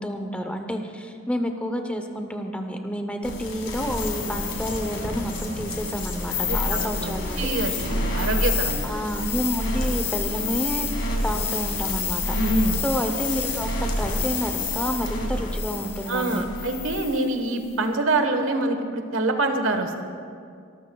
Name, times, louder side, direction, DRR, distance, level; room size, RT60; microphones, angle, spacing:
voice 1, 0.0-7.8 8.8-10.9 11.2-12.4 12.8-16.5, equal, 5° left, 5 dB, 0.8 m, -29 dB
sound 1, 3.2-17.3, left 2 dB, 60° left, 2.0 m, -28 dB
voice 2, 6.4-8.9 12.3-12.8 16.1-20.0, right 2 dB, 75° right, 6 dB, 1.3 m, -25 dB
24.5 x 13.5 x 2.3 m, 2.2 s
head